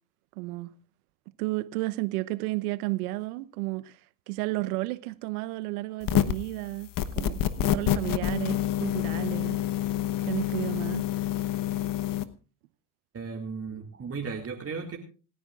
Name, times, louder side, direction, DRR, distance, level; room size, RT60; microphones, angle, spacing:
voice 1, 0.4-0.7 1.4-4.0 4.3-9.6 10.2-11.1, right 20 dB, 80° right, 1.0 m, -32 dB
sound 1, 6.0-6.5 7.0-12.2, left 12 dB, 50° left, 1.1 m, -27 dB
voice 2, 13.1-15.0, right 5 dB, 30° right, 2.4 m, -35 dB
27.0 x 10.0 x 2.4 m
hypercardioid pair, 75°, 44 cm